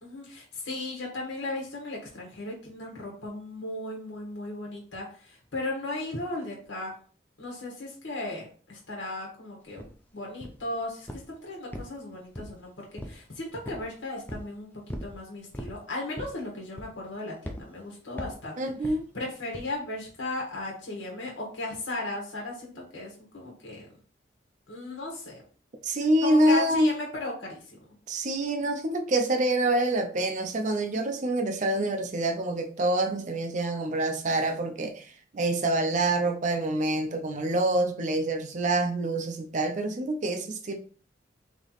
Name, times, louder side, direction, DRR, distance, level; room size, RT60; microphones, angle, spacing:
voice 1, 0.0-6.9 7.4-14.7 15.0-23.9 24.7-25.4 26.2-27.8, left 2 dB, 85° left, 1.2 m, -36 dB
sound 1, 9.8-9.9 10.4-10.7 11.1-11.3 11.7-12.6 13.0-13.2 13.6-13.9 14.3-14.5 14.9-15.2 15.5-15.8 16.2-16.4 16.8-17.1 17.4-17.6 18.2-18.4 18.8-19.0 19.5-19.7, equal, 10° left, 0.4 m, -38 dB
voice 2, 18.6-19.1 25.8-26.9 28.1-35.1 35.3-40.7, right 1 dB, 40° right, 0.5 m, -26 dB
3.3 x 2.9 x 4.0 m
head